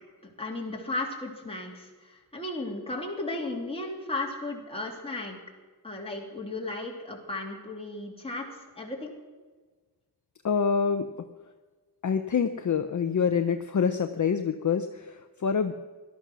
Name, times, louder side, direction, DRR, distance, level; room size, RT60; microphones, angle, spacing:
voice 1, 0.4-5.4 5.8-8.5 8.8-9.1, left 2 dB, 15° left, -1 dB, 2.9 m, -35 dB
voice 2, 10.4-11.1 12.0-15.7, left 6 dB, 45° left, 8 dB, 0.7 m, -26 dB
18.0 x 12.5 x 6.2 m, 1.4 s
wide cardioid pair, 150°, 41 cm